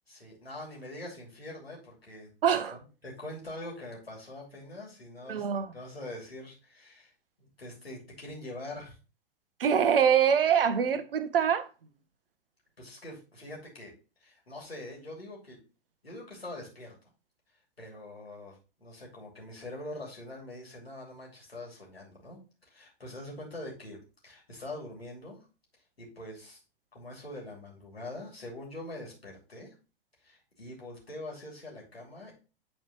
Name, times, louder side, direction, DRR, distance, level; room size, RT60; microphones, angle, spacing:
voice 1, 0.1-2.6 3.0-7.1 7.4-9.0 12.8-13.9 14.2-15.6 16.0-16.9 17.8-24.0 24.2-25.4 26.0-26.6 26.9-29.7 30.2-32.3, left 1 dB, 80° left, 2.9 m, -44 dB
voice 2, 2.4-2.8 5.3-5.7 9.6-11.7, right 8 dB, 65° right, 0.9 m, -24 dB
8.5 x 4.4 x 3.1 m
figure-of-eight pair, 95°, 30 cm